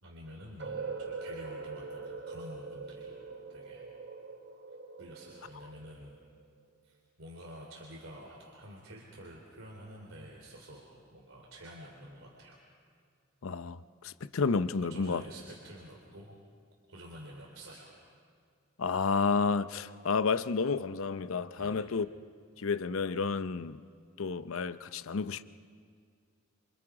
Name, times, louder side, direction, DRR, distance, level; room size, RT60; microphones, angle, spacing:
voice 1, 0.0-3.2 3.5-3.9 5.0-6.2 6.8-12.6 14.8-16.4 16.9-18.0 21.6-21.9, equal, 85° right, 3.4 m, -49 dB
sound 1, 0.6-6.5, right 4 dB, 60° right, 1.4 m, -43 dB
voice 2, 13.4-15.2 18.8-22.1 22.6-23.8 24.2-25.4, left 4 dB, 80° left, 0.6 m, -31 dB
27.5 x 26.5 x 4.9 m
head